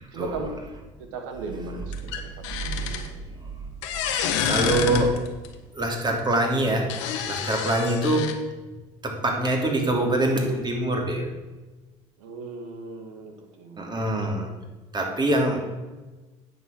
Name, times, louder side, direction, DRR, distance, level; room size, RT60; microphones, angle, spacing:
voice 1, 0.1-0.5 1.1-3.2 4.1-4.4 12.2-14.0, right 3 dB, 80° right, 5 dB, 1.8 m, -38 dB
sound 1, 1.9-3.1 3.8-5.5 5.8-5.9 6.9-8.3, left 8 dB, 80° left, 1.2 m, -28 dB
voice 2, 4.0-5.1 5.7-6.9 7.3-8.3 9.0-11.2 13.8-14.5 14.9-15.6, right 1 dB, 30° right, 2 dB, 3.0 m, -24 dB
9.4 x 7.3 x 6.1 m, 1.2 s
hypercardioid pair, 75°, 15 cm